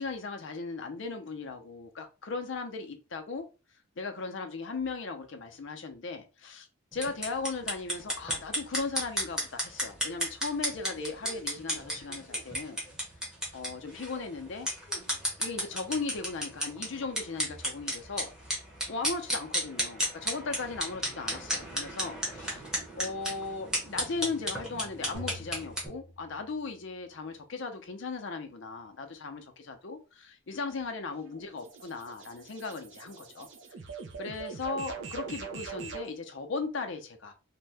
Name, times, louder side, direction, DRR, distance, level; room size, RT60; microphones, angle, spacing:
voice 1, 0.0-3.5 4.0-12.8 13.5-14.7 15.4-18.3 18.9-22.6 22.9-33.5 34.2-37.3, left 4 dB, 55° left, 0.5 m, -37 dB
sound 1, 6.9-25.9, equal, 5° right, 0.8 m, -34 dB
sound 2, 25.1-27.1, left 1 dB, 80° right, 1.2 m, -46 dB
sound 3, 30.7-36.1, right 5 dB, 55° right, 0.5 m, -43 dB
2.6 x 2.1 x 3.3 m
head